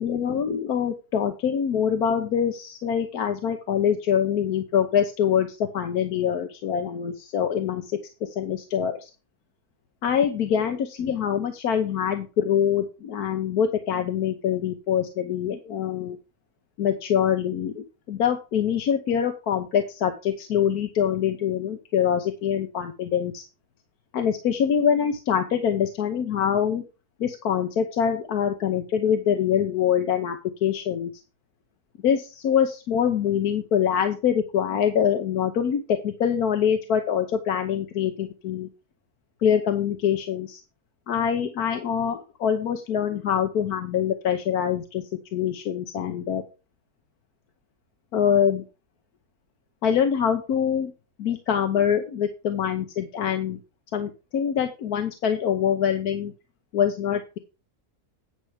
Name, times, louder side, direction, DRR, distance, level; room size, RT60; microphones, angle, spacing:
voice 1, 0.0-9.1 10.0-16.2 16.8-23.4 24.1-26.8 27.2-31.1 32.0-38.7 39.4-40.6 41.1-45.0 45.3-46.4 48.1-48.6 49.8-50.9 51.2-53.6 53.9-56.3 56.7-57.4, left 8 dB, 75° left, 6 dB, 1.4 m, -24 dB
9.6 x 5.7 x 4.9 m, 0.31 s
omnidirectional pair, 1.7 m